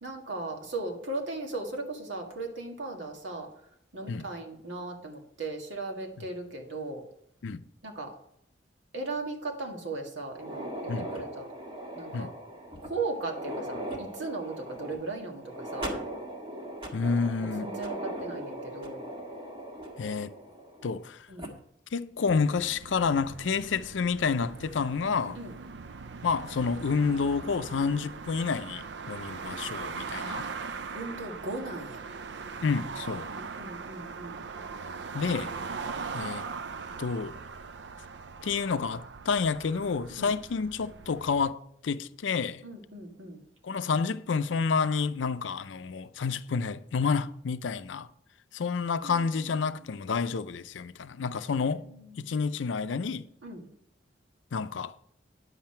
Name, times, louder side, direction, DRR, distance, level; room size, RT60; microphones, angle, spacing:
voice 1, 0.0-3.5 3.9-7.0 7.8-8.1 8.9-11.5 12.0-12.3 12.8-15.9 17.4-19.0 21.3-21.6 25.4-25.6 30.9-32.0 33.3-34.4 40.1-40.3 42.6-43.4 49.0-49.7 51.6-52.2 53.4-53.7, right 2 dB, 80° right, 1.9 m, -37 dB
sound 1, 10.3-21.0 21.4-21.5 22.3-22.4 22.9-23.0 24.3-24.6, right 1 dB, 30° right, 1.5 m, -39 dB
voice 2, 16.9-17.7 20.0-20.3 20.8-21.3 21.9-25.4 26.2-30.4 32.6-33.3 35.1-35.5 36.1-36.4 37.0-37.3 38.4-42.6 43.6-48.1 48.5-51.8 52.2-53.3 54.5-54.9, left 5 dB, 85° left, 0.5 m, -29 dB
sound 2, 22.3-41.5, right 5 dB, 65° right, 0.4 m, -40 dB
9.9 x 7.6 x 4.4 m
head